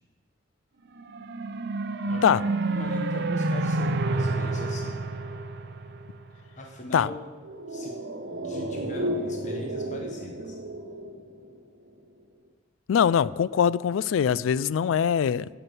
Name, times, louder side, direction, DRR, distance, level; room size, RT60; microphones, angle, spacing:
sound 1, 1.0-6.5, right 2 dB, 60° right, 0.7 m, -29 dB
voice 1, 2.0-5.0 6.6-7.3 7.7-8.0 8.4-10.6, left 1 dB, 40° left, 1.0 m, -40 dB
sound 2, 7.4-11.9 12.2-12.3, right 1 dB, 75° right, 1.2 m, -33 dB
voice 2, 12.9-15.5, left 8 dB, 90° left, 0.3 m, -22 dB
12.0 x 6.0 x 7.8 m
head